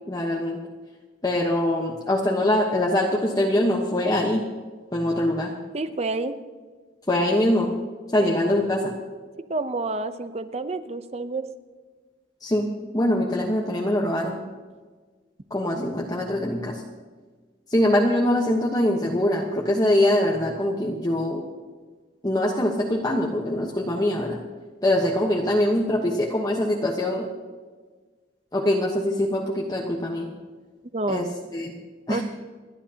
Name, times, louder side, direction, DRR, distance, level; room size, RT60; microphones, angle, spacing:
voice 1, 0.1-0.6 1.2-4.4 4.9-5.5 7.1-7.7 8.1-8.9 12.4-12.7 12.9-14.4 15.5-16.8 17.7-21.4 22.2-24.4 24.8-27.3 28.5-30.3 31.1-31.3 31.5-31.7 32.1-32.2, left 1 dB, 20° left, -2 dB, 1.1 m, -23 dB
voice 2, 5.7-6.3 8.2-8.4 9.5-11.5 30.9-31.2 32.1-32.2, right 3 dB, 35° right, 10 dB, 0.7 m, -28 dB
29.5 x 11.0 x 2.9 m, 1.4 s
head